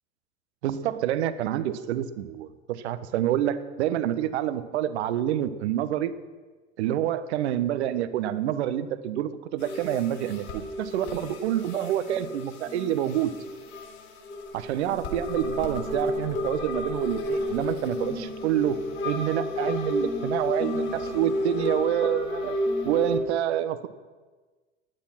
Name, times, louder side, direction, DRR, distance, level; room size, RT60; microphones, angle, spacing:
voice 1, 0.6-6.1 6.8-13.3 14.5-18.8 19.0-22.6 22.8-23.9, right 11 dB, 60° right, 12 dB, 1.3 m, -27 dB
sound 1, 9.6-23.2, left 1 dB, 55° left, 5.1 m, -32 dB
18.5 x 12.0 x 6.0 m, 1.3 s
figure-of-eight pair, 80°, 38 cm